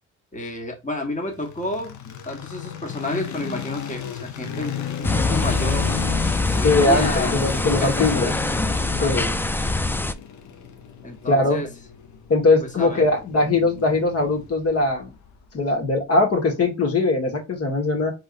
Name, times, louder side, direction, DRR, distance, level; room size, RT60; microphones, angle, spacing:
voice 1, 0.3-6.0 6.5-8.3 9.0-9.4 11.0-11.7 12.6-13.0, left 1 dB, 25° left, 2 dB, 1.6 m, -31 dB
sound 1, 1.3-15.5, left 9 dB, 70° left, 1.0 m, -34 dB
sound 2, 5.0-10.1, left 2 dB, 5° left, 0.4 m, -23 dB
voice 2, 6.6-8.3 9.0-9.3 11.3-11.6 12.3-15.1 15.5-18.1, left 2 dB, 50° left, 3 dB, 1.8 m, -20 dB
4.6 x 3.6 x 2.6 m, 0.25 s
cardioid pair, 90°, 30 cm